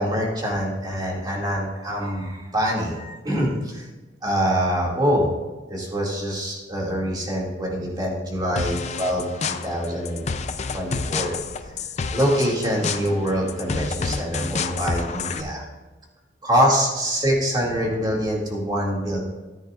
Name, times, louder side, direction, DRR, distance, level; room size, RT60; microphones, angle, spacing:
voice 1, 0.0-3.9 4.2-5.3 5.7-10.2 10.7-11.3 12.1-15.7 16.4-19.2, equal, 25° right, -3 dB, 2.4 m, -24 dB
sound 1, 8.6-15.4, left 4 dB, 40° left, 0.5 m, -29 dB
13.5 x 10.5 x 2.5 m, 1.2 s
head